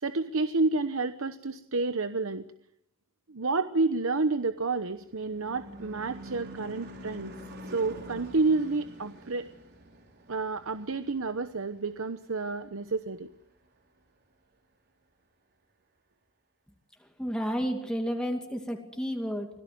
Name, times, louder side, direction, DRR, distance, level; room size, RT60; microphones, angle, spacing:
voice 1, 0.0-2.4 3.3-7.3 7.7-9.4 10.3-13.3, right 3 dB, 65° right, 10 dB, 1.0 m, -29 dB
Car passing by / Truck / Engine, 4.2-12.9, equal, 50° right, 5.4 m, -47 dB
voice 2, 17.2-19.5, equal, 5° left, 2 dB, 2.4 m, -31 dB
25.5 x 17.5 x 9.4 m, 0.79 s
head